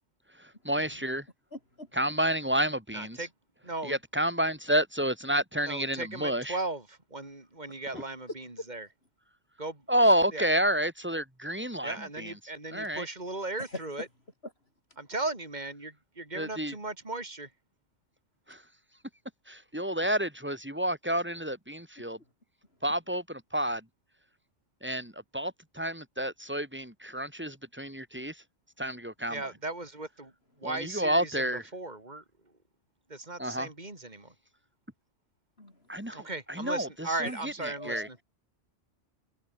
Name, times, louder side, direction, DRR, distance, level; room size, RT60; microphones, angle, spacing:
voice 1, 0.4-1.2 1.9-3.3 3.8-6.6 9.9-12.3 12.7-13.1 16.3-16.7 18.5-18.6 19.5-22.2 22.8-23.8 24.8-28.4 28.8-29.4 30.6-31.6 33.4-33.7 35.9-38.1, right 1 dB, 10° right, 5.5 m, -30 dB
voice 2, 1.5-1.9 7.9-8.0 10.0-10.1 13.7-13.8 35.6-35.7 37.2-38.2, left 1 dB, 55° left, 6.4 m, -43 dB
voice 3, 2.9-3.3 3.6-3.9 5.7-8.9 9.6-9.8 10.3-10.5 11.8-14.1 15.0-17.5 29.3-30.3 30.6-31.5 31.7-32.2 33.1-34.3 36.1-38.2, right 2 dB, 35° right, 4.5 m, -37 dB
open air
omnidirectional pair, 1.3 m